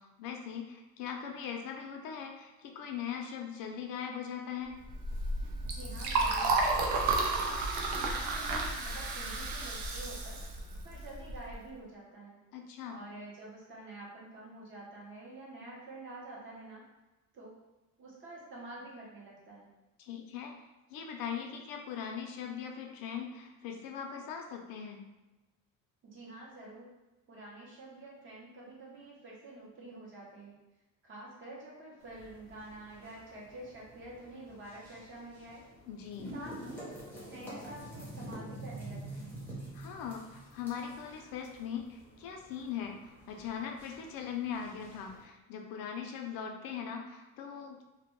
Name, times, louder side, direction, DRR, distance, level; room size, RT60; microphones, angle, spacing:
voice 1, 0.2-4.8 12.5-13.0 20.0-20.5 20.9-25.0 35.9-36.3 39.7-47.8, left 7 dB, 70° left, 2 dB, 0.5 m, -40 dB
Liquid, 4.9-11.5, right 3 dB, 85° right, 0.5 m, -32 dB
voice 2, 5.6-6.6 7.0-10.4 10.8-12.4 12.9-16.9 17.3-17.6 18.0-19.7 26.0-26.9 27.3-30.5 31.0-35.6 36.3-39.4, right 2 dB, 35° right, -4 dB, 0.6 m, -48 dB
sound 1, 32.0-45.2, right 1 dB, 5° left, 0.5 m, -48 dB
2.1 x 2.1 x 2.9 m, 1.1 s
cardioid pair, 175°, 35 cm